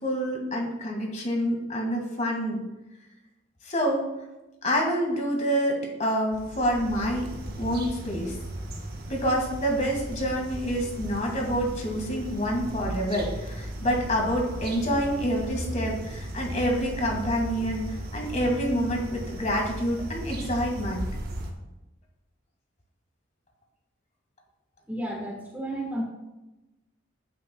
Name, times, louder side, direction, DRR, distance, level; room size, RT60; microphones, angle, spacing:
voice 1, 0.0-2.6 3.6-4.1 4.6-7.3 7.6-8.3 9.1-21.0, equal, 35° left, 0 dB, 1.8 m, -27 dB
sound 1, 6.3-21.5, right 1 dB, 50° right, 1.1 m, -36 dB
voice 2, 24.9-26.0, right 1 dB, 10° right, -2 dB, 1.4 m, -32 dB
10.0 x 8.8 x 2.3 m, 1.0 s
head